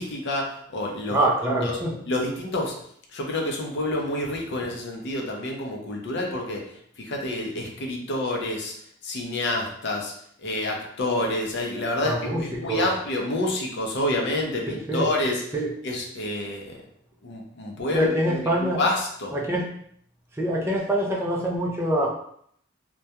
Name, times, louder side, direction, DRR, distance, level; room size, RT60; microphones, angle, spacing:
voice 1, 0.0-2.7 3.1-8.7 9.0-10.1 10.4-16.8 17.2-19.3, left 1 dB, 60° left, 0 dB, 0.5 m, -28 dB
voice 2, 1.1-2.0 12.0-12.9 14.7-15.1 15.5-15.7 17.9-18.8 19.3-19.7 20.4-22.1, right 1 dB, 15° right, -2 dB, 0.3 m, -25 dB
2.2 x 2.2 x 2.7 m, 0.66 s
head